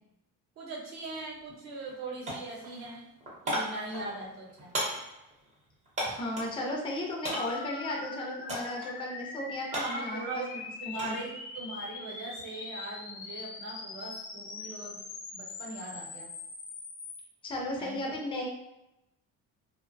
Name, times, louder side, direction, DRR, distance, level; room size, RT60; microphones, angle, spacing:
voice 1, 0.6-3.1 3.4-4.7 9.7-10.5 10.8-15.0 15.3-16.3 17.8-18.1, right 2 dB, 60° right, -2 dB, 0.8 m, -40 dB
sound 1, 1.0-1.1 1.5-2.0 2.3-6.6 7.2-7.7 8.5-8.9 9.2-11.2 11.6-12.0, equal, 25° right, 0.6 m, -36 dB
voice 2, 6.0-10.4 11.0-11.2 17.4-18.5, left 1 dB, 15° left, -1 dB, 0.3 m, -35 dB
sound 2, 7.3-17.2, left 3 dB, 85° left, 0.7 m, -42 dB
2.7 x 2.0 x 2.5 m, 0.90 s
cardioid pair, 175°, 32 cm